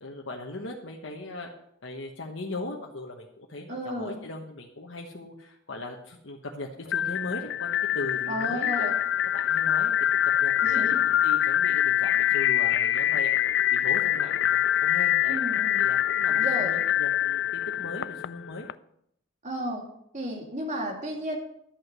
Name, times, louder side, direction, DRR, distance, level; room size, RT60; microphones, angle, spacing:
voice 1, 0.0-1.5 1.8-8.9 9.3-9.9 10.2-15.4 15.8-18.7, left 2 dB, 85° left, 0 dB, 1.2 m, -39 dB
voice 2, 3.7-4.2 8.3-9.0 10.6-11.0 15.3-15.9 16.3-16.7 19.4-19.8 20.1-21.4, right 1 dB, 40° right, 1 dB, 2.6 m, -33 dB
sound 1, 6.9-18.7, left 11 dB, 60° left, 0.3 m, -25 dB
11.5 x 8.3 x 6.1 m, 0.74 s
head